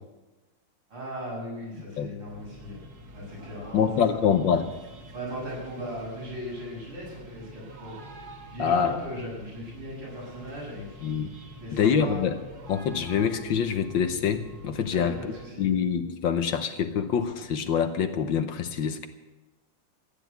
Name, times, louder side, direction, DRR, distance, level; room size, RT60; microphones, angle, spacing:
voice 1, 0.9-2.8 3.1-4.3 5.1-7.9 8.5-11.0 11.6-12.3 14.9-15.7, equal, 80° right, -4 dB, 7.7 m, -38 dB
sound 1, 2.3-15.5, right 1 dB, 45° right, 2.2 m, -47 dB
voice 2, 3.7-4.7 8.6-9.0 11.0-11.3 11.7-12.3 12.7-15.1 15.6-19.1, left 7 dB, 65° left, 9 dB, 1.5 m, -25 dB
15.5 x 10.0 x 8.2 m, 1.1 s
omnidirectional pair, 2.4 m